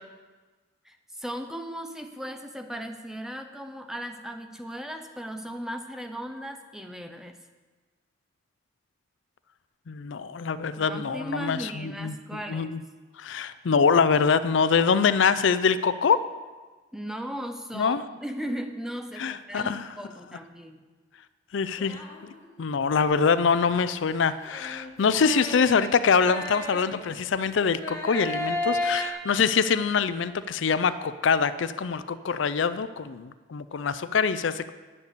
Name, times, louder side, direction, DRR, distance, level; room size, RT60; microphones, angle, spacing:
voice 1, 0.8-7.4 10.8-12.8 16.9-20.9, equal, ahead, 6 dB, 0.6 m, -37 dB
voice 2, 9.9-12.2 12.5-12.8 13.2-16.2 17.7-18.0 19.2-19.9 21.5-22.0 22.6-34.7, left 5 dB, 60° left, 13 dB, 0.4 m, -24 dB
sound 1, 21.8-22.6 24.5-27.3 27.8-29.1, left 2 dB, 15° left, 1.5 m, -33 dB
11.0 x 6.7 x 8.4 m, 1.3 s
head